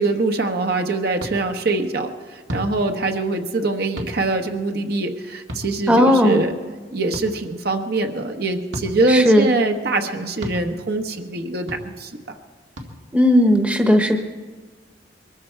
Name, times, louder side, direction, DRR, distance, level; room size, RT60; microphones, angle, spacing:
voice 1, 0.0-6.5 6.9-12.1, right 2 dB, 60° right, 4 dB, 1.1 m, -23 dB
sound 1, 1.2-1.3 2.5-2.7 4.0-4.1 5.5-5.7 7.1-7.2 8.7-8.9 10.4-10.6 11.7-11.8 12.7-12.9, equal, 85° right, 2.0 m, -31 dB
voice 2, 5.9-6.4 9.1-9.5 13.1-14.2, equal, 5° right, 4 dB, 1.0 m, -15 dB
22.5 x 13.5 x 4.6 m, 1.4 s
head